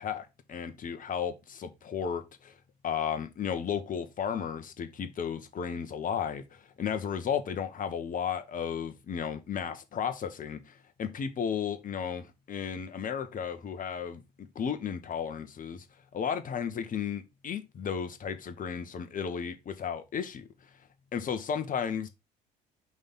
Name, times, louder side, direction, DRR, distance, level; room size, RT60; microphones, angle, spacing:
voice 1, 0.0-2.5 2.8-15.8 16.1-20.5 21.1-22.1, left 7 dB, 40° left, 1.3 m, -34 dB
5.3 x 3.6 x 5.6 m
figure-of-eight pair, 55°, 21 cm